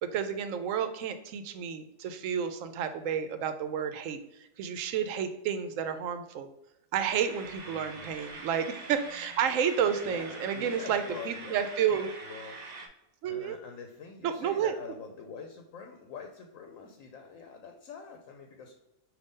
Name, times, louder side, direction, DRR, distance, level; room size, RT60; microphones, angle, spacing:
voice 1, 0.1-4.2 4.6-6.5 6.9-12.1 13.2-13.6 14.2-14.7, right 8 dB, 80° right, 9 dB, 0.9 m, -31 dB
sound 1, 7.1-12.9, right 3 dB, 50° right, 0.5 m, -44 dB
voice 2, 7.6-8.2 10.0-12.6 13.3-18.7, left 5 dB, 85° left, 3 dB, 1.0 m, -45 dB
5.2 x 2.6 x 3.5 m, 0.90 s
omnidirectional pair, 1.3 m